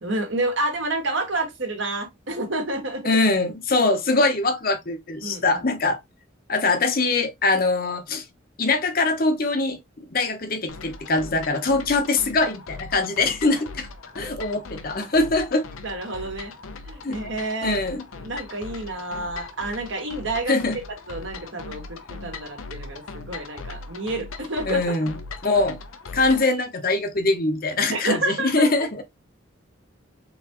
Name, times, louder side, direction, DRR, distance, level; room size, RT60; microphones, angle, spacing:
voice 1, 0.0-3.2 5.2-5.6 15.8-16.5 16.8-17.8 18.2-20.6 21.1-24.9 27.9-28.9, right 2 dB, 65° right, 1.5 m, -29 dB
voice 2, 3.0-6.0 6.5-8.2 8.6-13.9 14.1-15.6 17.0-17.2 17.6-18.0 20.5-20.7 24.7-25.1 25.4-25.8 26.1-29.0, left 3 dB, 45° left, 0.8 m, -23 dB
sound 1, 10.7-26.6, left 4 dB, 85° left, 0.7 m, -39 dB
3.9 x 3.5 x 3.0 m
head